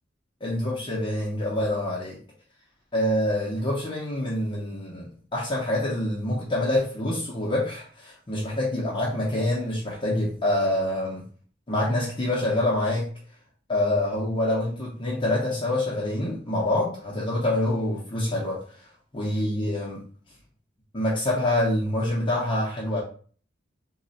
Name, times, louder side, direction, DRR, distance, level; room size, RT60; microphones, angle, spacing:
voice 1, 0.4-2.2 2.9-11.2 11.7-13.1 13.7-18.9 19.1-20.0 20.9-23.0, left 1 dB, 25° left, -5 dB, 0.7 m, -26 dB
3.1 x 2.2 x 3.9 m, 0.43 s
head